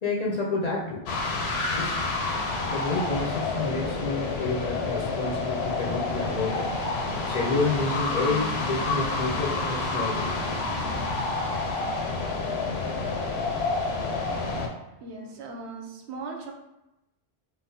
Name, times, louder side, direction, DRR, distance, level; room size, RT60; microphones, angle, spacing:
voice 1, 0.0-1.0 1.7-2.0 2.6-6.7 7.2-10.3, left 3 dB, 50° left, -3 dB, 0.6 m, -29 dB
sound 1, 1.1-14.7, left 3 dB, 80° left, 0.8 m, -29 dB
sound 2, 4.6-11.1, right 2 dB, 40° right, 0.5 m, -41 dB
voice 2, 15.0-16.5, right 3 dB, 85° right, 2 dB, 0.9 m, -38 dB
3.8 x 2.0 x 2.6 m, 0.92 s
omnidirectional pair, 1.1 m